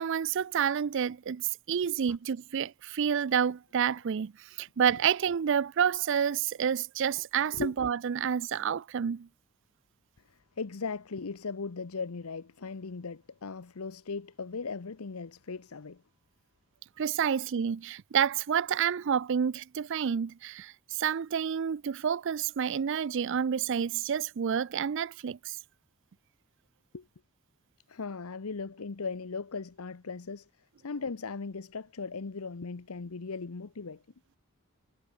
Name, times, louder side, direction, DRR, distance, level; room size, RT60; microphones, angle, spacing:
voice 1, 0.0-4.3 4.6-9.3 17.0-25.6, right 8 dB, 55° right, 0.4 m, -29 dB
voice 2, 10.3-16.0 26.9-27.1 27.9-30.5 30.8-34.0, left 4 dB, 80° left, 0.8 m, -38 dB
head